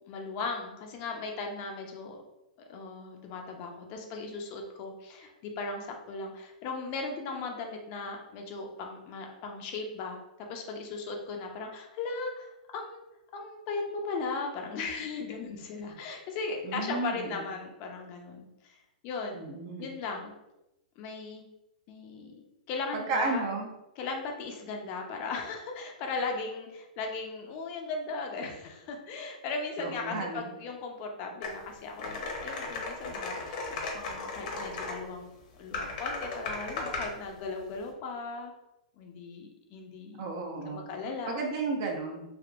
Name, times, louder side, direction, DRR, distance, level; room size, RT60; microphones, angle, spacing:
voice 1, 0.1-2.2 2.7-10.2 10.5-13.0 13.3-18.8 19.0-19.4 19.8-20.3 21.0-21.4 21.9-22.3 22.7-23.4 24.0-35.3 35.6-38.5 39.0-40.2 40.7-41.4, left 4 dB, 40° left, 2 dB, 0.6 m, -37 dB
voice 2, 16.6-17.4 19.3-19.9 23.1-23.7 29.8-30.5 40.2-40.8 41.3-42.2, right 3 dB, 45° right, 1 dB, 0.7 m, -33 dB
sound 1, 31.4-31.5 32.0-35.0 35.7-37.1, left 3 dB, 60° left, 0.9 m, -36 dB
3.5 x 2.5 x 2.4 m, 0.94 s
hypercardioid pair, 130°, 5 cm